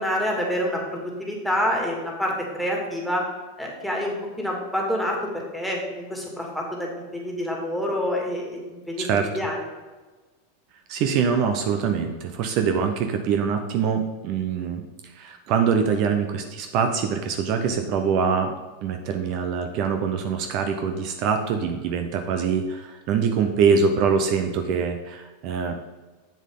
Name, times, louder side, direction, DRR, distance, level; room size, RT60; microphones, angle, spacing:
voice 1, 0.0-3.3 3.6-5.2 5.5-9.1 9.3-9.6, equal, ahead, -2 dB, 2.2 m, -27 dB
voice 2, 9.0-9.3 10.9-18.5 18.8-25.7, right 6 dB, 50° right, 5 dB, 0.7 m, -24 dB
7.7 x 7.2 x 3.7 m, 1.3 s
hypercardioid pair, 120°, 0 cm